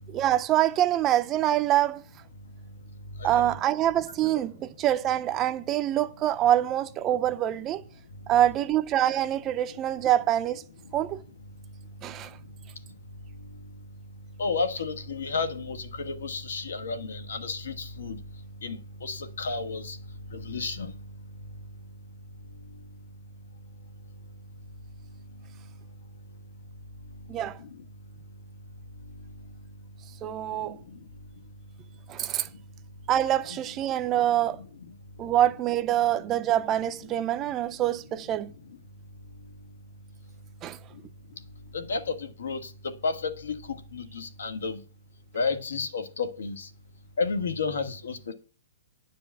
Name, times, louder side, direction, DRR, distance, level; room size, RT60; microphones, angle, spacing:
voice 1, 0.1-2.0 3.2-7.8 8.3-10.6 10.9-11.2 12.0-12.4 27.3-27.6 30.2-30.8 32.1-32.5 33.1-34.6 35.2-38.5 40.6-40.8, right 12 dB, 15° right, 0.5 m, -25 dB
voice 2, 3.2-3.5 14.4-18.2 18.6-20.0 20.3-20.9 27.6-27.7 41.7-44.8 45.3-46.7 47.2-48.3, left 4 dB, 90° left, 1.7 m, -32 dB
9.9 x 5.2 x 8.2 m
hypercardioid pair, 170°, 0 cm